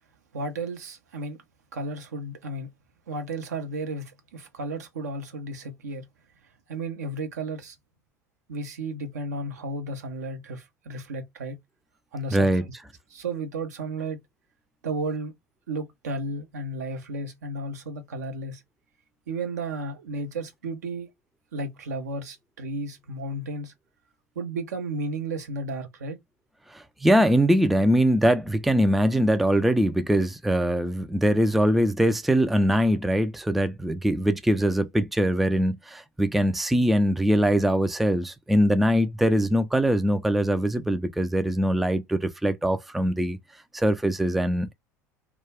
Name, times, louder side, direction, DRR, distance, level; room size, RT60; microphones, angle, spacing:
voice 1, 0.3-1.4 1.7-2.7 3.1-6.1 6.7-7.8 8.5-11.6 12.1-12.6 13.1-14.2 14.8-15.3 15.7-18.6 19.3-21.1 21.5-23.7 24.4-26.2, right 2 dB, 70° right, 0.6 m, -33 dB
voice 2, 12.3-12.6 26.7-43.4 43.7-44.7, equal, ahead, 0.3 m, -22 dB
2.2 x 2.2 x 3.3 m
figure-of-eight pair, 70°, 9 cm